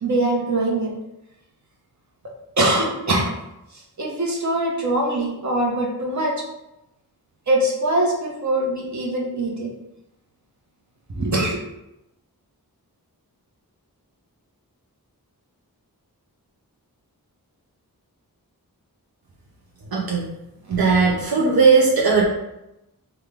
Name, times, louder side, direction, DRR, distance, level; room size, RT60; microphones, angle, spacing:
voice 1, 0.0-0.9 2.6-3.3 4.0-6.4 7.5-9.7 11.2-11.6, right 1 dB, 50° right, -2 dB, 0.9 m, -22 dB
voice 2, 19.9-20.3 20.7-22.2, right 4 dB, 75° right, -3 dB, 0.6 m, -17 dB
3.5 x 2.2 x 3.4 m, 0.91 s
wide cardioid pair, 55°, 37 cm